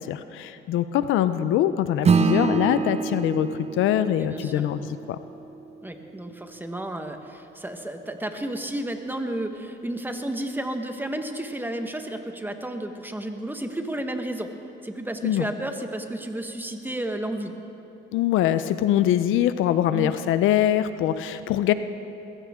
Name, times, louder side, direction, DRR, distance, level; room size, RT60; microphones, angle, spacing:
voice 1, 0.0-3.5 3.8-5.2 15.2-15.4 18.1-21.7, left 11 dB, 85° left, 12 dB, 0.6 m, -23 dB
Acoustic guitar / Strum, 2.0-6.8, right 5 dB, 35° right, 0.6 m, -26 dB
voice 2, 4.1-4.6 5.8-14.5 14.8-17.5 19.9-20.1, right 1 dB, 10° right, 5 dB, 1.3 m, -32 dB
21.0 x 15.5 x 3.7 m, 2.9 s
cardioid pair, 90°, 20 cm